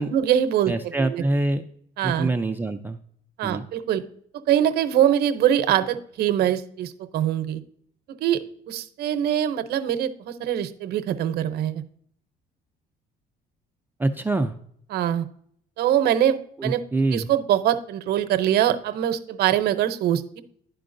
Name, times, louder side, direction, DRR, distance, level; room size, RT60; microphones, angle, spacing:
voice 1, 0.0-1.2 2.0-2.3 3.4-4.0 4.5-7.6 8.2-11.8 14.9-15.3 15.8-16.8 17.1-20.4, right 10 dB, 70° right, 10 dB, 0.7 m, -23 dB
voice 2, 0.7-1.6 2.0-3.0 3.4-3.6 14.0-14.5 16.6-17.3, right 2 dB, 10° right, 5 dB, 0.4 m, -25 dB
11.0 x 4.5 x 2.6 m, 0.65 s
cardioid pair, 110°, 17 cm